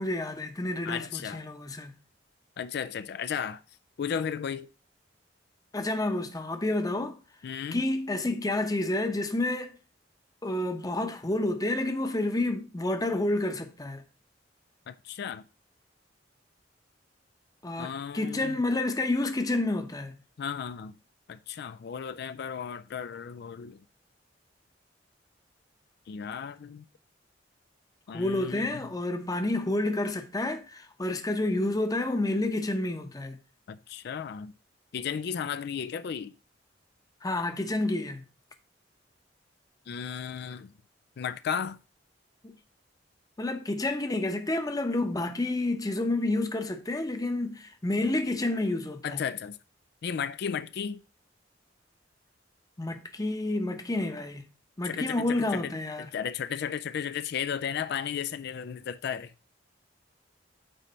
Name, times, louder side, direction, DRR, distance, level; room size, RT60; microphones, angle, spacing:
voice 1, 0.0-2.0 5.7-7.2 7.7-9.8 10.4-14.0 17.6-20.2 28.1-33.4 37.2-38.2 42.4-42.5 43.4-49.2 52.8-54.5 54.8-56.1, left 2 dB, 20° left, 0.8 m, -29 dB
voice 2, 0.9-1.5 2.6-3.6 4.0-4.7 7.4-7.8 14.9-15.4 17.8-18.6 20.4-20.9 21.3-23.8 26.1-26.8 28.1-28.8 33.7-34.5 34.9-36.3 39.9-40.7 41.2-41.8 49.0-49.6 50.0-51.0 54.8-55.7 56.1-59.3, left 7 dB, 60° left, 0.4 m, -34 dB
8.9 x 3.2 x 5.4 m
head